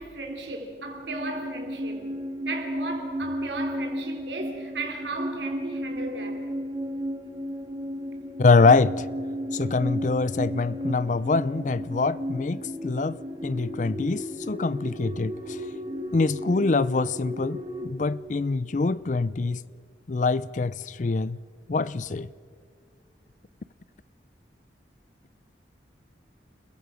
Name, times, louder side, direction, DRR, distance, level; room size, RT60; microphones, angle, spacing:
voice 1, 0.0-2.1 2.4-6.4, right 2 dB, 75° right, 3.3 m, -35 dB
sound 1, 0.7-17.9, equal, 25° right, 2.1 m, -34 dB
voice 2, 8.4-9.1 9.5-15.6 16.1-19.6 20.1-21.4 21.7-22.3, left 3 dB, 40° left, 0.5 m, -24 dB
29.5 x 16.0 x 6.3 m
head